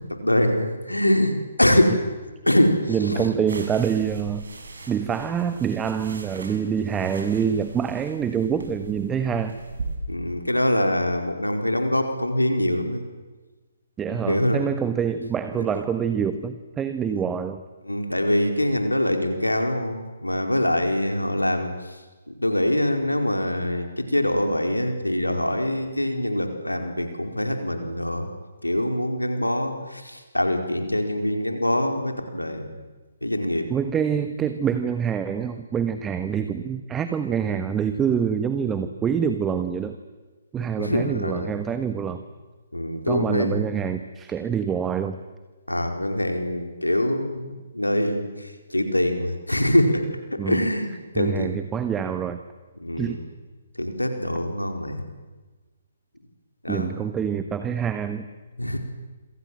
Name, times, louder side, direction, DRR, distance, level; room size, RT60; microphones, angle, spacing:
voice 1, 0.1-2.0 2.5-3.3 10.1-13.0 14.1-14.6 15.5-15.6 17.1-17.2 17.9-21.7 22.4-28.3 28.6-32.7 33.2-33.7 40.8-41.6 42.7-43.6 45.7-47.5 47.7-51.6 52.8-53.2 53.8-55.0 56.6-56.9 58.6-58.8, left 1 dB, 85° left, 5 dB, 4.8 m, -24 dB
voice 2, 2.9-4.5 4.9-9.6 14.0-17.6 33.7-40.0 40.5-42.2 43.1-45.2 50.4-50.7 51.1-52.4 53.0-53.2 56.7-58.3, right 7 dB, 10° right, 10 dB, 1.3 m, -26 dB
sound 1, 3.5-10.0, right 3 dB, 60° right, 7.0 m, -39 dB
27.5 x 27.0 x 7.7 m, 1.3 s
figure-of-eight pair, 135°, 0 cm